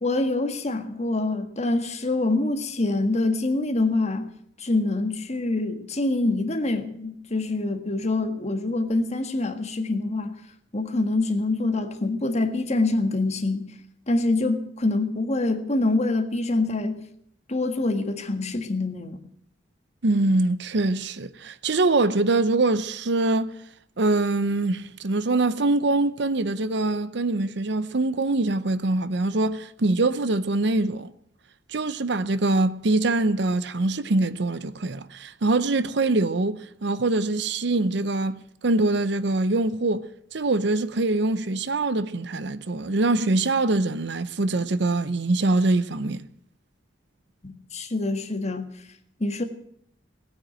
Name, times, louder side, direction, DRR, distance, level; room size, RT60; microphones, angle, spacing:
voice 1, 0.0-4.3 4.6-10.4 10.7-13.7 14.1-17.1 17.5-19.2 47.4-48.7 49.2-49.4, left 2 dB, 35° left, 1.7 m, -25 dB
voice 2, 20.0-23.5 24.0-31.1 31.7-40.0 40.3-46.3, right 2 dB, 65° right, 0.7 m, -24 dB
17.5 x 9.2 x 8.9 m
head